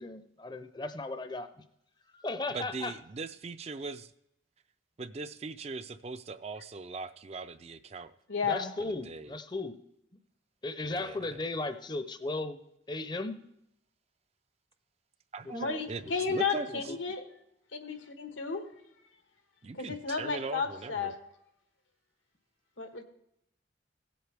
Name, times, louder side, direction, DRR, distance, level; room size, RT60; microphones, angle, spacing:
voice 1, 0.0-1.6 2.1-2.9 8.4-9.8 10.6-12.6 12.9-13.4 15.6-15.7 16.7-17.0, left 2 dB, 20° left, 10 dB, 0.6 m, -36 dB
voice 2, 2.5-4.1 5.0-8.1 8.8-9.3 10.8-11.4 15.3-16.9 19.6-21.1, right 3 dB, 35° right, 11 dB, 0.4 m, -40 dB
voice 3, 8.3-8.7 15.5-17.2 17.7-18.7 19.7-21.1 22.8-23.0, left 5 dB, 85° left, 6 dB, 1.4 m, -33 dB
17.0 x 7.9 x 3.4 m, 0.80 s
head